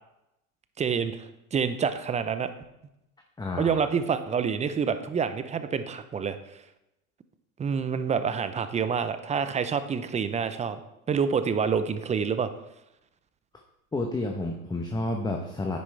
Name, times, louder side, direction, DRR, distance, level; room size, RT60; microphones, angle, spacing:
voice 1, 0.8-2.5 3.6-6.4 7.6-10.8 11.1-12.5, right 6 dB, 15° right, 11 dB, 0.6 m, -27 dB
voice 2, 3.4-3.8 13.9-15.8, left 2 dB, 10° left, 2 dB, 1.0 m, -30 dB
9.6 x 9.5 x 3.3 m, 0.88 s
hypercardioid pair, 100°, 45 cm